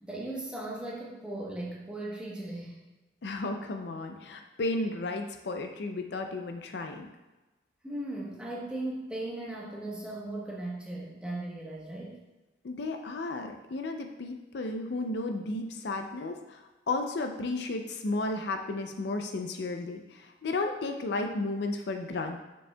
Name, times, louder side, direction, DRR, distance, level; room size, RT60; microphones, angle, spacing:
voice 1, 0.0-2.8 7.8-12.2, right 1 dB, 5° right, -4 dB, 1.0 m, -37 dB
voice 2, 3.2-7.1 12.6-22.4, left 2 dB, 60° left, 5 dB, 0.4 m, -33 dB
6.9 x 6.2 x 2.2 m, 1.1 s
head